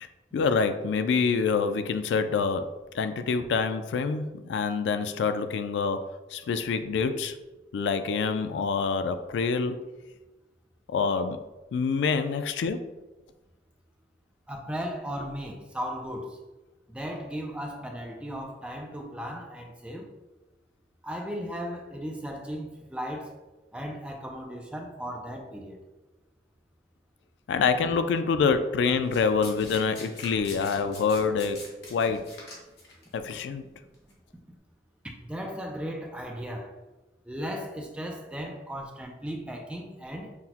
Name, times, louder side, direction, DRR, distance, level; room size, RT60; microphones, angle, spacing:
voice 1, 0.3-2.6 2.9-6.0 6.3-7.3 7.7-9.8 10.9-11.4 11.7-12.8 27.5-31.6 31.9-32.3 33.1-33.6, left 5 dB, 80° left, 0.3 m, -26 dB
voice 2, 14.5-16.4 16.9-20.1 21.0-23.4 23.7-25.8 35.2-36.8 37.3-40.4, equal, 5° right, 0.3 m, -36 dB
Domestic sounds home sounds, 29.1-33.0 33.9-34.1, left 2 dB, 65° left, 1.2 m, -44 dB
5.8 x 2.1 x 2.8 m
head